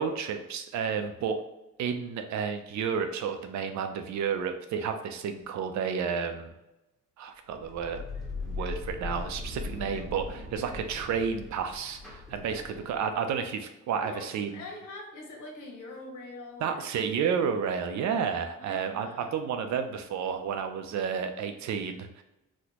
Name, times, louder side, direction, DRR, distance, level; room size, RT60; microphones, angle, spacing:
voice 1, 0.0-1.4 1.8-6.5 7.2-8.0 8.4-14.6 16.6-22.2, right 6 dB, 70° right, 7 dB, 0.5 m, -31 dB
sound 1, 7.5-13.1, left 3 dB, ahead, 0.9 m, -39 dB
voice 2, 12.4-13.0 14.0-16.9 18.6-19.4, left 2 dB, 85° left, 0 dB, 1.0 m, -44 dB
4.2 x 2.2 x 2.9 m, 0.95 s
cardioid pair, 90°, 30 cm